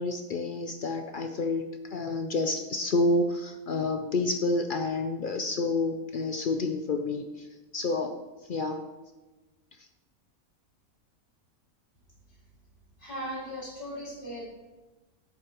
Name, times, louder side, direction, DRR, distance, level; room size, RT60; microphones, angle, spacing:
voice 1, 0.0-7.5 7.7-8.2 8.5-8.8, left 2 dB, 70° left, 6 dB, 0.5 m, -29 dB
voice 2, 13.0-14.5, equal, 35° left, -6 dB, 3.5 m, -37 dB
11.0 x 8.2 x 3.0 m, 1.2 s
omnidirectional pair, 1.5 m